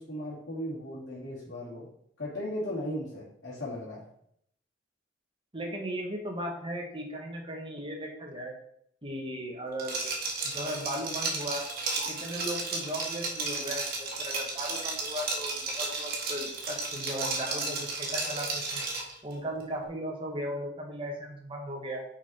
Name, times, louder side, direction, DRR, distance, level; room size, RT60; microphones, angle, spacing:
voice 1, 0.0-1.9 2.2-4.0, left 1 dB, 65° left, -12 dB, 3.1 m, -36 dB
voice 2, 5.5-8.5 9.0-10.1 10.4-11.7 12.1-18.8 19.2-22.0, equal, 30° right, 0 dB, 1.6 m, -37 dB
Liquid, 9.8-19.1, right 3 dB, 55° right, 1.7 m, -33 dB
6.1 x 5.6 x 4.4 m, 0.70 s
head